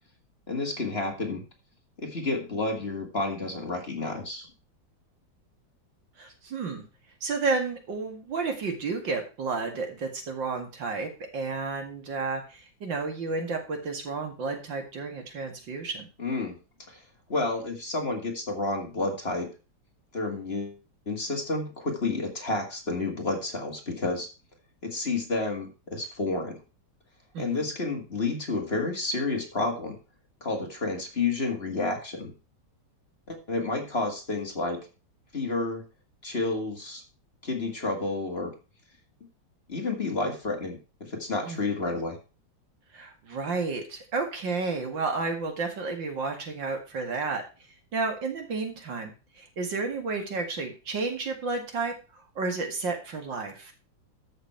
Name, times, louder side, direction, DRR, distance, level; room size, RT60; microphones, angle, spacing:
voice 1, 0.5-1.4 2.0-4.5 16.2-16.6 16.9-17.0 17.3-19.5 20.1-20.8 21.1-24.3 24.8-26.6 27.4-30.0 30.4-32.3 33.3-34.8 35.3-35.8 36.2-37.0 37.4-38.5 39.7-42.2, left 3 dB, 30° left, 2 dB, 2.4 m, -30 dB
voice 2, 6.2-6.8 7.2-16.1 27.3-27.6 41.4-41.6 42.9-47.4 47.9-51.9 52.4-53.7, right 4 dB, 70° right, 5 dB, 2.7 m, -31 dB
13.5 x 6.7 x 4.5 m, 0.32 s
omnidirectional pair, 2.1 m